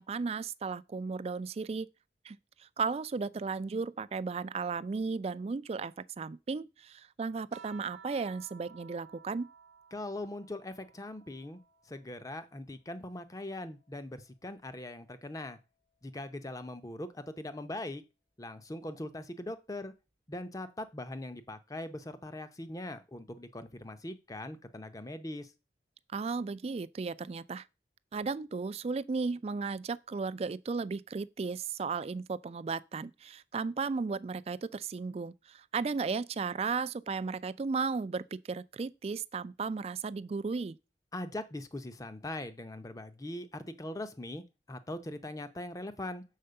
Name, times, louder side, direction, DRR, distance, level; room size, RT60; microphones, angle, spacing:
voice 1, 0.0-1.9 2.2-9.5 26.1-27.6 28.1-40.8, right 4 dB, 35° right, 0.3 m, -35 dB
sound 1, 7.5-12.3 12.8-14.5 15.7-16.2, right 7 dB, 80° right, 0.9 m, -57 dB
voice 2, 9.9-11.6 11.9-15.6 16.0-18.0 18.4-19.9 20.3-25.5 41.1-46.2, left 1 dB, 20° left, 0.6 m, -41 dB
6.5 x 4.5 x 6.7 m
head